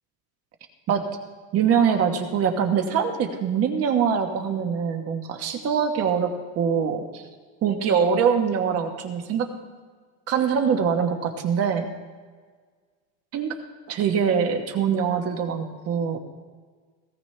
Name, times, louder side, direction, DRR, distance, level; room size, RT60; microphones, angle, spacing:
voice 1, 1.5-7.2 7.6-9.5 10.3-11.8 13.3-13.5 13.9-16.2, right 7 dB, 35° right, 5 dB, 1.2 m, -23 dB
18.0 x 16.5 x 3.3 m, 1.5 s
cardioid pair, 165°, 43 cm